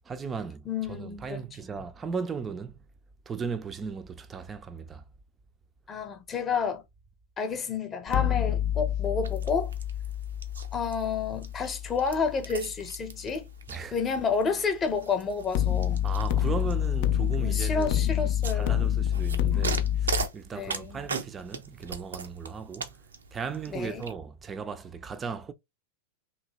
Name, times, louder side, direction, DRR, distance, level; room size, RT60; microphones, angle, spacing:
voice 1, 0.1-2.9 3.3-5.0 13.7-14.0 16.0-23.0 23.3-25.5, right 5 dB, 20° right, 0.4 m, -37 dB
voice 2, 0.7-1.4 5.9-6.8 7.4-9.7 10.7-13.5 13.9-16.1 17.4-18.9 20.5-21.0 23.7-24.1, left 5 dB, 25° left, 0.8 m, -30 dB
sound 1, 8.1-13.1 15.5-20.3, left 10 dB, 45° left, 0.4 m, -28 dB
sound 2, 9.2-24.1, right 5 dB, 70° right, 0.5 m, -40 dB
3.0 x 2.8 x 2.9 m
figure-of-eight pair, 90°, 0 cm